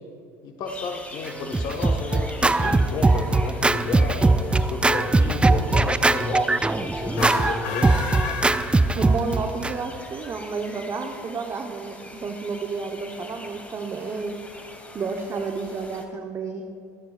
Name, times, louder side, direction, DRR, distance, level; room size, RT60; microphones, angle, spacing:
voice 1, 0.4-8.0, left 3 dB, 55° left, 3 dB, 1.4 m, -32 dB
sound 1, 0.7-16.1, left 1 dB, 15° left, 2.1 m, -43 dB
Scratching (performance technique), 1.3-9.7, right 3 dB, 10° right, 0.4 m, -21 dB
sound 2, 7.1-9.4, left 4 dB, 75° left, 2.2 m, -31 dB
voice 2, 9.0-14.4 14.9-16.6, right 4 dB, 35° right, 3 dB, 1.0 m, -31 dB
24.5 x 9.2 x 2.5 m, 2.5 s
hypercardioid pair, 75°, 9 cm